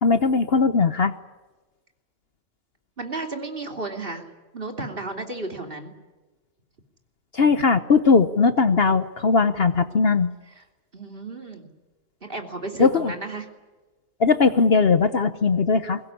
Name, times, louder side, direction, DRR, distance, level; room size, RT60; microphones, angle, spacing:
voice 1, 0.0-1.1 7.3-10.3 12.8-13.1 14.2-16.0, left 4 dB, 50° left, 11 dB, 1.1 m, -19 dB
voice 2, 3.0-4.3 4.5-5.9 10.6-10.7 10.9-11.7 12.2-13.5, right 2 dB, 40° right, 4 dB, 3.1 m, -33 dB
23.0 x 19.5 x 9.9 m, 1.2 s
omnidirectional pair, 1.4 m